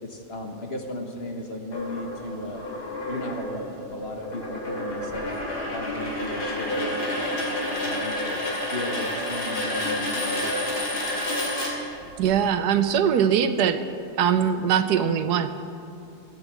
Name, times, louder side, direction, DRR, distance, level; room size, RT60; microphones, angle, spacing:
voice 1, 0.0-2.6 3.0-5.3 5.7-8.4 8.7-11.4, left 1 dB, 40° left, 3 dB, 1.3 m, -36 dB
sound 1, 1.7-12.3, left 1 dB, 75° left, 3.1 m, -29 dB
voice 2, 12.2-13.8 14.2-15.5, right 8 dB, 80° right, 10 dB, 1.3 m, -21 dB
16.5 x 9.1 x 7.4 m, 2.6 s
omnidirectional pair, 1.8 m